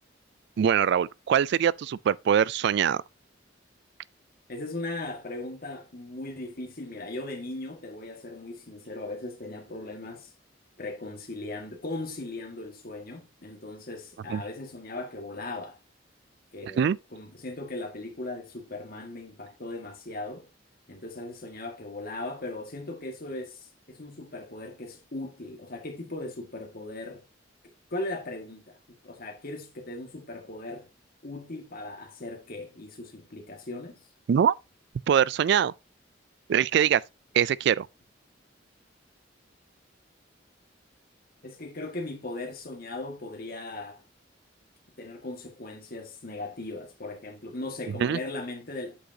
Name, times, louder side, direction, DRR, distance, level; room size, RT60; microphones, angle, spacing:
voice 1, 0.6-3.0 14.3-14.4 16.6-17.0 34.3-34.5 35.1-35.7 36.5-37.0 37.3-37.9 48.0-48.2, right 8 dB, 65° right, 0.3 m, -23 dB
voice 2, 4.5-10.3 10.8-15.8 16.5-20.5 20.9-27.3 27.9-30.9 31.2-34.0 41.4-44.0 45.0-49.0, left 2 dB, 50° left, 1.8 m, -38 dB
8.1 x 6.2 x 2.8 m
head